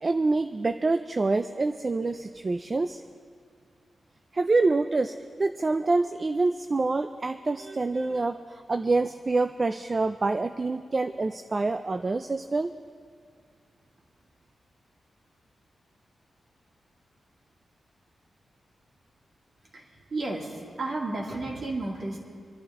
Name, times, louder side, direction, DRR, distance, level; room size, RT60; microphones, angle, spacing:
voice 1, 0.0-3.0 4.3-12.7, right 3 dB, 30° right, 8 dB, 0.4 m, -26 dB
voice 2, 19.7-22.2, right 2 dB, 45° right, -1 dB, 2.5 m, -33 dB
26.0 x 11.5 x 3.7 m, 2.1 s
wide cardioid pair, 145°, 0 cm